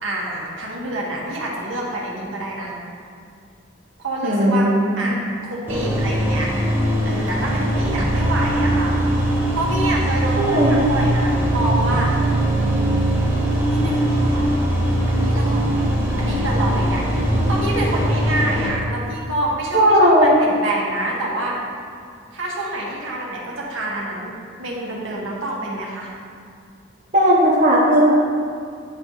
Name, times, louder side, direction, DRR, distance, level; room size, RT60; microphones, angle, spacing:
voice 1, 0.0-2.7 4.0-4.7 4.9-6.5 7.0-12.1 12.5-12.9 13.7-14.5 15.1-15.7 16.1-21.6 22.3-26.1, right 1 dB, 70° right, -4 dB, 1.6 m, -27 dB
voice 2, 4.2-5.2 10.4-10.8 19.7-20.3 27.1-28.1, equal, 40° right, -6 dB, 0.9 m, -16 dB
sound 1, 5.7-18.7, right 1 dB, 10° right, 1.3 m, -20 dB
9.7 x 4.7 x 3.9 m, 2.3 s
head